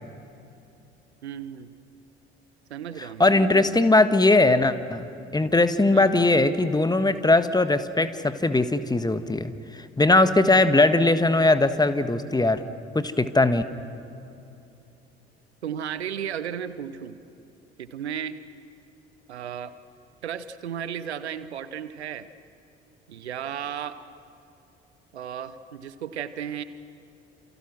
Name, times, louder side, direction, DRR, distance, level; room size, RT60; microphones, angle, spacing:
voice 1, 1.2-1.7 2.7-3.6 5.9-6.3 15.6-17.2 17.8-18.4 19.3-19.7 20.2-22.3 23.1-24.0 25.1-26.6, right 9 dB, 80° right, 14 dB, 1.0 m, -34 dB
voice 2, 3.0-12.6 12.9-13.6, left 2 dB, 10° left, 11 dB, 1.4 m, -20 dB
28.5 x 27.5 x 6.1 m, 2.8 s
figure-of-eight pair, 55°, 33 cm